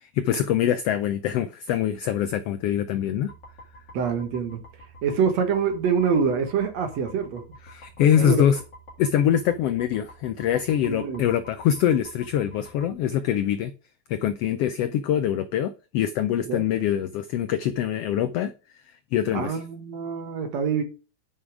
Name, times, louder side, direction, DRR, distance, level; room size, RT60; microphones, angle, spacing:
voice 1, 0.0-3.3 7.7-8.6 9.0-13.7 14.1-18.5 19.1-19.6, left 10 dB, 80° left, 1.4 m, -24 dB
sound 1, 3.3-13.0, equal, 35° left, 2.8 m, -48 dB
voice 2, 3.9-4.6 5.0-7.6 8.1-8.4 10.8-11.2 16.5-16.6 19.3-20.8, right 6 dB, 65° right, 2.4 m, -25 dB
9.9 x 5.6 x 4.8 m
omnidirectional pair, 3.5 m